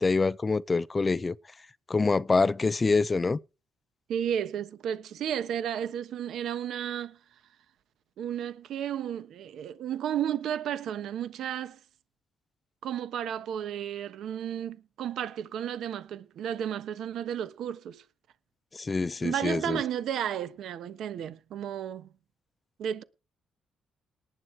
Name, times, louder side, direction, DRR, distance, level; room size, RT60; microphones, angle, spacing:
voice 1, 0.0-1.4 1.9-3.4 18.7-19.8, left 3 dB, 25° left, 0.6 m, -25 dB
voice 2, 4.1-7.2 8.2-11.8 12.8-18.0 19.2-22.1 22.8-23.0, right 9 dB, 75° right, 1.2 m, -33 dB
19.0 x 9.5 x 4.5 m
cardioid pair, 90°, 0 cm